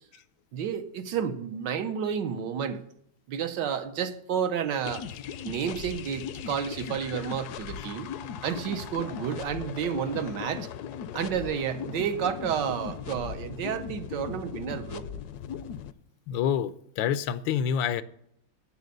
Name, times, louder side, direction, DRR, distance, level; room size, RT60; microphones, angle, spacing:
voice 1, 0.5-2.8 3.3-5.0 5.4-8.1 8.4-10.7 11.1-15.0, right 8 dB, 70° right, 1.4 m, -31 dB
sound 1, 4.8-15.9, left 8 dB, 70° left, 1.0 m, -38 dB
voice 2, 16.3-18.0, left 8 dB, 90° left, 1.4 m, -27 dB
9.3 x 7.9 x 6.6 m
omnidirectional pair, 2.0 m